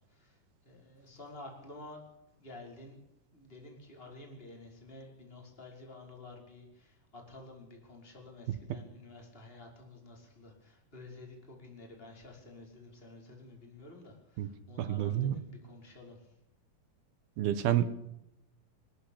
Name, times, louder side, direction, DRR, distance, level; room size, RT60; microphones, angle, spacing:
voice 1, 0.6-2.0 2.4-3.0 3.3-16.3, left 2 dB, 15° left, 1 dB, 5.3 m, -51 dB
voice 2, 14.8-15.4 17.4-17.8, right 11 dB, 75° right, 12 dB, 3.3 m, -29 dB
25.0 x 13.5 x 8.7 m, 0.84 s
omnidirectional pair, 4.5 m